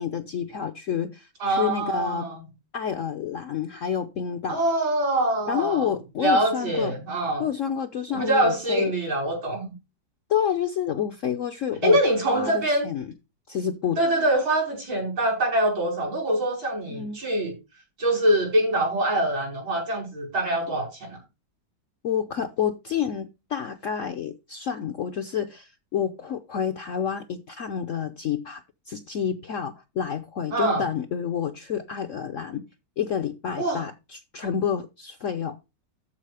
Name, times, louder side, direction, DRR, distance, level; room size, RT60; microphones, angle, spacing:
voice 1, 0.0-2.3 2.7-4.6 5.5-6.9 7.4-8.9 10.3-12.0 12.3-13.1 13.5-14.0 16.9-17.2 22.0-32.6 33.0-35.6, left 8 dB, 60° left, 0.8 m, -29 dB
voice 2, 1.4-2.4 4.5-5.9 6.2-7.4 8.1-9.7 11.8-12.9 14.0-17.5 18.0-21.2 30.5-30.8 33.6-33.8, right 1 dB, 85° right, 6.3 m, -24 dB
13.5 x 4.9 x 4.8 m
omnidirectional pair, 2.0 m